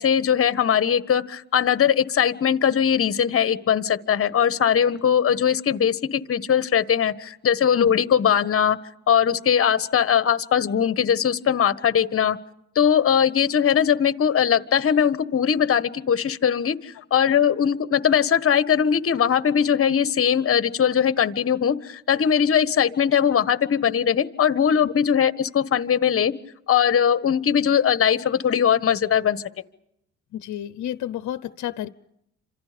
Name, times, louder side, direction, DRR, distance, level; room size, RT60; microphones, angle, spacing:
voice 1, 0.0-8.8 9.1-12.4 12.7-26.3 26.7-29.4, left 8 dB, 45° left, 14 dB, 1.4 m, -20 dB
voice 2, 30.3-31.9, left 11 dB, 70° left, 14 dB, 0.9 m, -31 dB
29.5 x 26.5 x 5.2 m, 0.80 s
cardioid pair, 90°, 30 cm